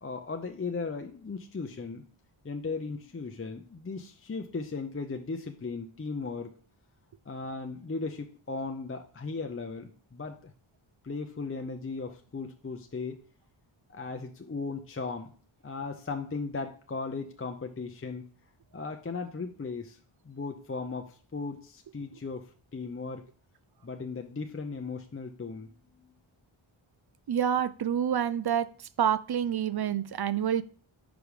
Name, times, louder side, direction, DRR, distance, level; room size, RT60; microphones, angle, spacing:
voice 1, 0.0-2.0 2.4-6.5 7.3-10.5 11.0-13.2 13.9-15.3 15.6-18.3 18.7-20.0 20.2-23.2 23.8-25.7, left 4 dB, 25° left, 5 dB, 0.6 m, -37 dB
voice 2, 27.3-28.7 29.0-30.6, right 9 dB, 50° right, 15 dB, 0.5 m, -27 dB
5.0 x 5.0 x 4.9 m, 0.42 s
wide cardioid pair, 70°, 50 cm